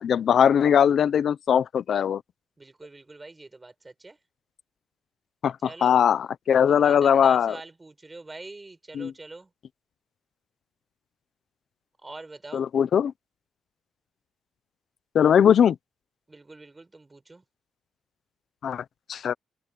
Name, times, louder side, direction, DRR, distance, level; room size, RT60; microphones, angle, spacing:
voice 1, 0.0-2.2 5.4-5.6 5.8-7.5 8.9-9.1 12.5-13.1 15.1-15.8 18.6-18.8 19.1-19.3, left 8 dB, 60° left, 0.8 m, -20 dB
voice 2, 2.6-4.2 5.6-5.9 6.7-9.5 12.0-12.7 16.3-17.4, right 2 dB, 20° right, 7.1 m, -44 dB
open air
cardioid pair, 90°, 0 cm